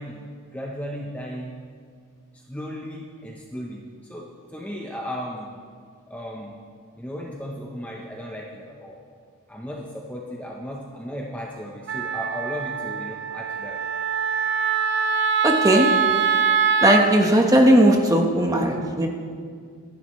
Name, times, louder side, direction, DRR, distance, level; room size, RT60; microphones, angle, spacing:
voice 1, 0.0-1.6 2.3-5.5 6.1-6.6 7.0-9.0 9.5-13.8, equal, 5° left, -2 dB, 0.9 m, -35 dB
Wind instrument woodwind instrument, 11.9-17.0, right 6 dB, 50° right, 0.6 m, -23 dB
voice 2, 15.4-15.9 16.8-19.1, right 1 dB, 15° right, 1 dB, 1.3 m, -17 dB
26.0 x 11.0 x 3.2 m, 2.1 s
head